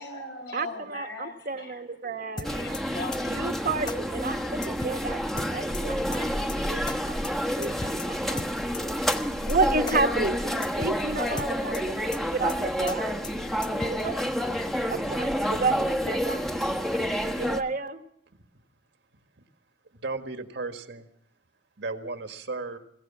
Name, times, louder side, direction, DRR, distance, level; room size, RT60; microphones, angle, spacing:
voice 1, 0.0-3.7, left 2 dB, 75° left, 3 dB, 5.4 m, -40 dB
voice 2, 0.5-2.5 3.3-7.2 7.6-8.5 9.3-13.2 13.8-14.3 14.8-16.7 17.4-18.0, right 3 dB, 50° right, 7 dB, 1.3 m, -31 dB
sound 1, 2.4-2.8 3.1-3.2 3.5-3.6 3.9-4.0 4.2-4.3 4.6-5.0 5.4-5.8 6.1-6.2 6.5-6.6 6.9-7.0 7.2-7.3 7.6-8.1 8.4-8.8 9.1-9.2 9.5-9.6 9.9-10.0 10.2-10.3 10.6-11.0 11.4-11.8 12.1-12.2 12.5-12.6 12.9-13.0 13.2-13.3 13.6-14.0, left 3 dB, 25° left, 0.8 m, -36 dB
sound 2, 2.4-17.6, equal, ahead, 1.1 m, -29 dB
voice 3, 19.9-21.1 21.8-22.8, right 3 dB, 75° right, 6 dB, 1.7 m, -35 dB
22.0 x 16.5 x 7.2 m, 0.74 s
head